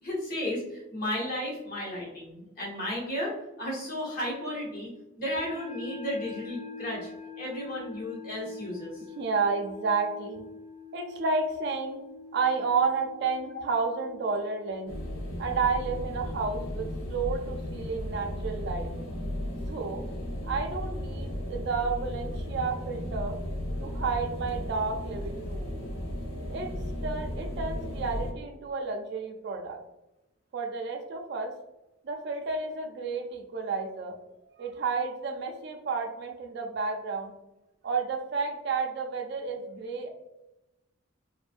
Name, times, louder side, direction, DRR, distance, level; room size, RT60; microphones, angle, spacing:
voice 1, 0.0-4.9 5.2-7.1 7.4-9.0, left 1 dB, 45° left, -6 dB, 1.0 m, -34 dB
sound 1, 5.3-16.8, left 4 dB, 15° left, 0.4 m, -45 dB
voice 2, 9.2-10.4 10.9-12.0 12.3-15.0 15.4-18.9 19.6-20.0 20.4-23.4 23.8-25.8 26.5-26.7 27.0-29.8 30.5-31.5 32.0-34.2 34.6-37.3 37.8-40.1, right 4 dB, 50° right, 3 dB, 0.3 m, -31 dB
sound 2, 14.9-28.3, left 1 dB, 85° left, 0.5 m, -35 dB
2.4 x 2.1 x 2.4 m, 0.93 s
head